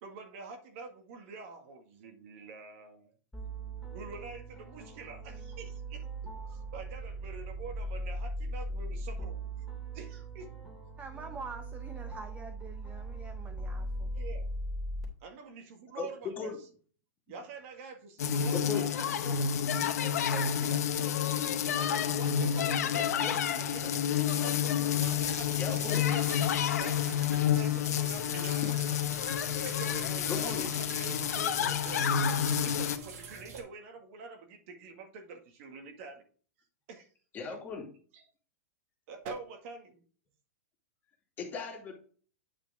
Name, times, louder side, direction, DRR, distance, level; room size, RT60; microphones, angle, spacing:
voice 1, 0.0-3.1 3.9-6.0 6.5-9.7 9.9-10.5 14.1-14.5 15.2-16.7 17.3-19.5 20.0-20.8 21.8-23.9 24.4-26.3 26.8-29.0 29.5-36.2 36.9-37.1 38.1-38.2 39.1-40.0, right 4 dB, 55° right, 5 dB, 1.9 m, -46 dB
sound 1, 3.3-15.0, right 1 dB, 5° left, 2.6 m, -39 dB
voice 2, 11.0-14.1, right 4 dB, 15° right, 5 dB, 0.9 m, -46 dB
sound 2, 18.2-33.0, left 8 dB, 75° left, 1.0 m, -29 dB
voice 3, 18.5-18.9 22.9-23.4 25.6-26.0 28.6-28.7 30.3-30.7 37.3-37.9 41.4-41.9, left 5 dB, 20° left, 1 dB, 2.4 m, -37 dB
sound 3, 25.0-33.6, right 5 dB, 75° right, 2.3 m, -46 dB
9.0 x 5.1 x 3.6 m, 0.42 s
hypercardioid pair, 140°, 9 cm